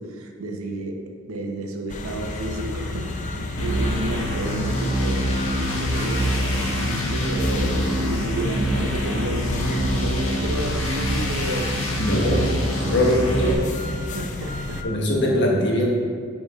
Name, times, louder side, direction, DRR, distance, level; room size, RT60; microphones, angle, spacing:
voice 1, 0.0-12.6 13.1-13.6 13.9-14.8, right 1 dB, 80° right, 3 dB, 0.8 m, -31 dB
sound 1, 1.9-14.8, left 2 dB, 35° left, 0.5 m, -31 dB
sound 2, 3.6-13.5, equal, 75° left, 1.3 m, -25 dB
voice 2, 11.9-12.5 12.9-13.5 14.8-15.9, left 1 dB, 55° left, -1 dB, 1.1 m, -21 dB
8.7 x 4.3 x 3.5 m, 2.1 s
head